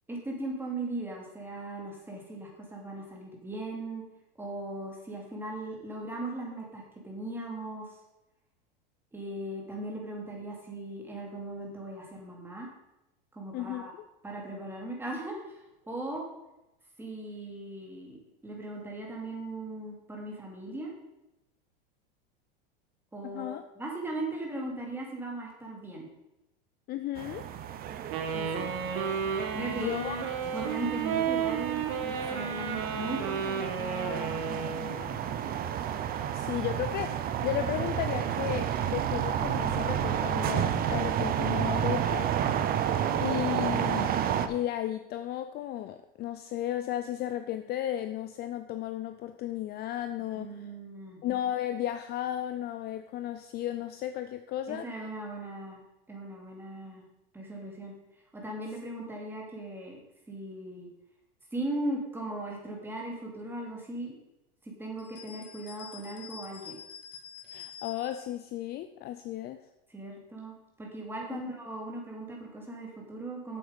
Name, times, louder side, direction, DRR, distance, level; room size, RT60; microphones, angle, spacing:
voice 1, 0.1-4.0 4.4-7.9 9.1-12.7 13.3-13.9 14.2-15.6 15.9-16.2 17.0-20.9 23.1-26.1 28.3-28.7 29.5-30.0 30.5-35.3 50.3-51.2 54.7-55.8 56.1-57.0 57.3-57.9 58.3-60.0 60.3-60.9 61.5-64.2 64.6-66.8 69.9-73.6, right 2 dB, 5° right, -1 dB, 2.5 m, -38 dB
voice 2, 13.5-14.0 23.3-23.6 26.9-27.4 29.6-30.3 36.3-42.3 43.2-44.1 44.5-50.6 51.2-54.9 67.5-69.6 71.3-71.4, left 12 dB, 35° left, 9 dB, 0.5 m, -34 dB
sound 1, 27.2-44.5, right 9 dB, 30° right, 0.7 m, -31 dB
Wind instrument woodwind instrument, 28.1-35.1, right 7 dB, 50° right, 1.4 m, -32 dB
sound 2, 65.0-68.3, left 7 dB, 70° left, 2.3 m, -47 dB
7.8 x 7.8 x 5.2 m, 0.93 s
supercardioid pair, 125°, 29 cm